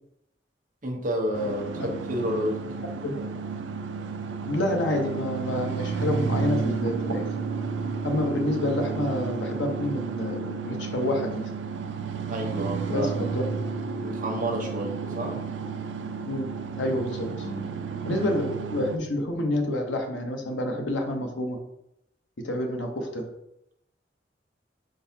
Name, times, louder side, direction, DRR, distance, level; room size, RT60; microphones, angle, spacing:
voice 1, 0.8-2.6 12.3-13.3 14.0-15.4 17.4-17.7, equal, 45° right, 1 dB, 0.9 m, -30 dB
sound 1, 1.3-19.0, right 5 dB, 80° right, 0.4 m, -32 dB
voice 2, 4.5-7.3 8.0-11.5 12.9-13.4 16.3-16.4 16.8-17.5 18.0-21.6 22.4-23.3, left 1 dB, 85° left, 3 dB, 0.9 m, -28 dB
4.6 x 3.9 x 2.8 m, 0.82 s
head